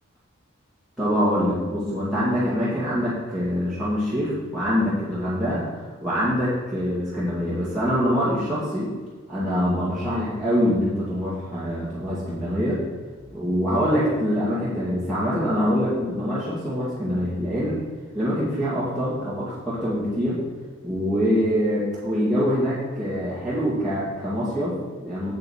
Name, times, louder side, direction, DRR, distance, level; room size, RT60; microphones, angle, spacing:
voice 1, 1.0-8.9 9.3-12.8 13.3-17.8 18.1-20.4 20.8-25.4, equal, ahead, -12 dB, 2.3 m, -24 dB
8.6 x 8.3 x 4.4 m, 1.5 s
head